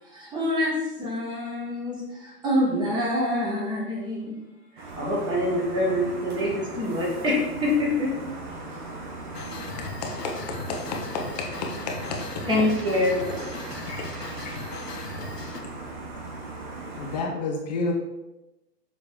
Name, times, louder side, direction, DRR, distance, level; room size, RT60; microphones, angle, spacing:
voice 1, 0.0-4.4 4.7-8.1 12.5-13.5, left 1 dB, 10° right, 1.3 m, -26 dB
sound 1, 4.8-17.2, right 3 dB, 30° right, 1.1 m, -38 dB
sound 2, 9.3-15.6, left 4 dB, 80° left, 1.0 m, -39 dB
voice 2, 10.0-10.3 10.7-12.2 13.9-14.0 17.0-17.9, left 3 dB, 25° left, 0.9 m, -30 dB
voice 3, 12.4-15.7, right 4 dB, 80° right, 0.9 m, -46 dB
7.2 x 3.2 x 5.4 m
figure-of-eight pair, 130°, 47 cm